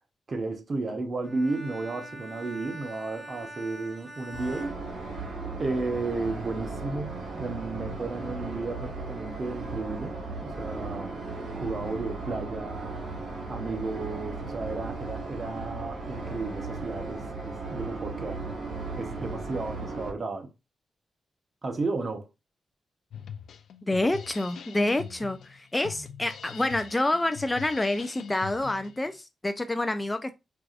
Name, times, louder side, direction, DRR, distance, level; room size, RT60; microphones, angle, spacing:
voice 1, 0.3-4.8 5.6-11.1 11.5-13.1 13.5-18.4 19.0-20.5 21.6-22.3, right 3 dB, 45° right, 0.8 m, -33 dB
Bowed string instrument, 1.2-5.7, right 1 dB, 25° right, 1.2 m, -44 dB
sound 1, 4.3-20.1, right 3 dB, 75° right, 1.5 m, -36 dB
Drum kit, 23.1-29.1, left 7 dB, 85° left, 0.4 m, -43 dB
voice 2, 23.8-30.3, left 2 dB, 20° left, 0.4 m, -28 dB
4.6 x 2.5 x 2.4 m
cardioid pair, 80°, 0 cm